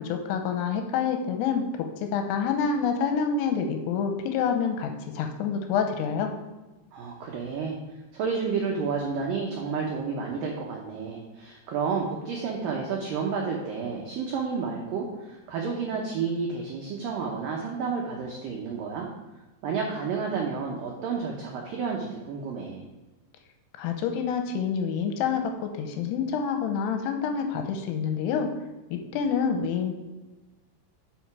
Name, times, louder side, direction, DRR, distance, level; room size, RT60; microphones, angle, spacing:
voice 1, 0.0-6.3 23.8-28.5 28.9-30.0, left 6 dB, 75° left, 5 dB, 2.5 m, -27 dB
voice 2, 6.9-7.8 8.1-19.1 19.6-22.9, right 5 dB, 90° right, -1 dB, 1.9 m, -31 dB
10.5 x 4.8 x 4.7 m, 1.1 s
omnidirectional pair, 5.4 m